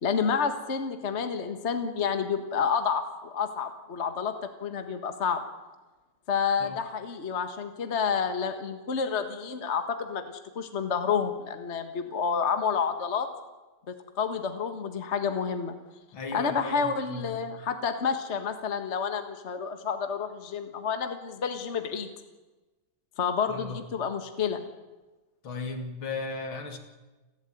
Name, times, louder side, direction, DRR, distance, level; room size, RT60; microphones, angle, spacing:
voice 1, 0.0-4.3 4.6-5.4 6.3-13.3 13.9-15.7 16.3-22.1 23.2-24.6, left 6 dB, 35° left, 7 dB, 1.7 m, -29 dB
voice 2, 16.1-17.4 23.5-23.8 25.4-26.8, left 3 dB, 70° left, 5 dB, 3.1 m, -36 dB
29.5 x 12.5 x 9.3 m, 1.2 s
omnidirectional pair, 2.3 m